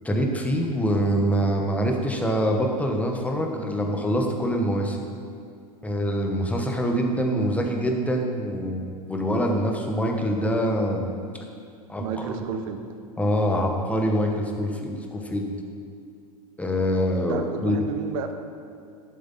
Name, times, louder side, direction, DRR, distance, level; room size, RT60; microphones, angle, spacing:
voice 1, 0.0-5.0 5.8-11.1 11.9-12.5 13.2-15.5 16.6-17.8, equal, 5° left, 1 dB, 1.4 m, -25 dB
voice 2, 12.0-12.8 17.2-18.3, right 6 dB, 60° right, 7 dB, 1.1 m, -31 dB
11.0 x 7.7 x 4.2 m, 2.4 s
hypercardioid pair, 95°, 20 cm